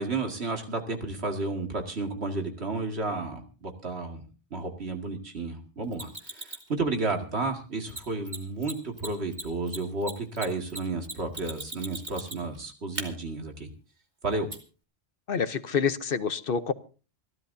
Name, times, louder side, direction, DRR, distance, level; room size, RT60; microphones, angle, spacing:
voice 1, 0.0-4.2 4.5-13.7 14.2-14.5, right 3 dB, 75° right, 3 dB, 2.4 m, -32 dB
Mechanisms, 5.9-6.7 7.9-8.0 8.3-8.4 8.6-8.7 9.0-12.6 13.0-13.1 14.5-14.6, right 2 dB, 45° right, 2.7 m, -37 dB
voice 2, 15.3-16.7, left 6 dB, 60° left, 12 dB, 1.0 m, -27 dB
28.5 x 12.5 x 2.7 m, 0.36 s
omnidirectional pair, 1.1 m